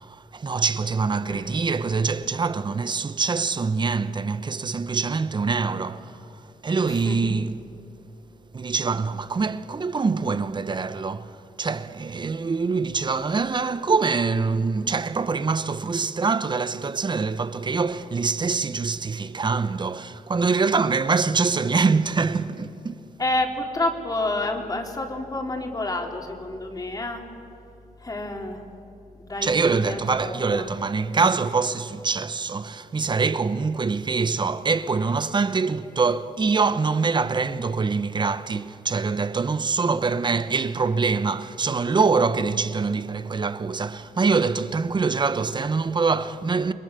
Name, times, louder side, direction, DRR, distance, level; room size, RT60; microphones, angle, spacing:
voice 1, 0.0-7.8 8.5-23.0 29.4-46.7, right 4 dB, 35° right, 1.0 m, -24 dB
voice 2, 23.2-27.2 28.0-28.6 29.2-30.7, left 2 dB, 25° left, 3.3 m, -29 dB
29.5 x 22.5 x 6.9 m
cardioid pair, 115°, 14 cm